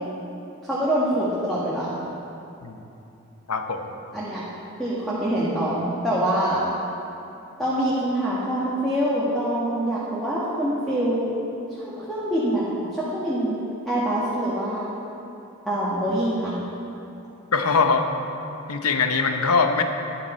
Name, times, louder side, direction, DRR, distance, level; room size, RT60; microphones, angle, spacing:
voice 1, 0.6-2.0 4.1-4.4 4.8-6.6 7.6-11.2 11.7-13.6 13.8-14.9 15.6-16.5, right 1 dB, ahead, -10 dB, 1.7 m, -25 dB
voice 2, 3.5-3.9 17.5-18.1 18.7-19.8, left 4 dB, 90° left, 6 dB, 0.9 m, -22 dB
12.5 x 10.5 x 4.4 m, 2.8 s
head